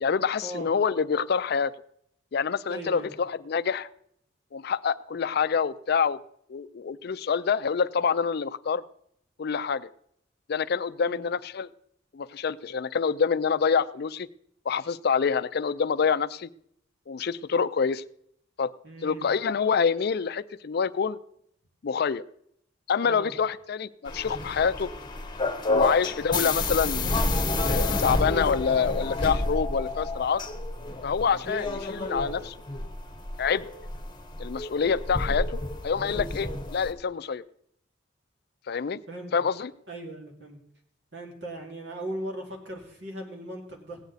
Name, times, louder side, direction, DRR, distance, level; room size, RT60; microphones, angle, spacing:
voice 1, 0.0-1.7 2.3-3.9 4.5-6.2 6.5-8.8 9.4-9.9 10.5-11.7 12.1-14.3 14.7-16.5 17.1-18.0 18.6-18.7 19.0-21.2 21.8-22.2 22.9-24.9 25.7-27.1 27.7-30.4 31.0-32.6 33.4-33.6 34.4-35.6 35.8-37.4 38.7-39.0 39.3-39.7, left 6 dB, 55° left, 14 dB, 0.4 m, -26 dB
voice 2, 2.7-3.1 11.0-11.2 18.8-19.3 23.0-23.3 25.7-25.8 36.4-36.6 39.1-39.3 39.9-40.6 41.1-44.0, right 1 dB, 65° right, 1 dB, 2.5 m, -38 dB
sound 1, 24.1-36.9, left 2 dB, 25° left, 1.0 m, -30 dB
16.5 x 9.3 x 4.0 m, 0.69 s
head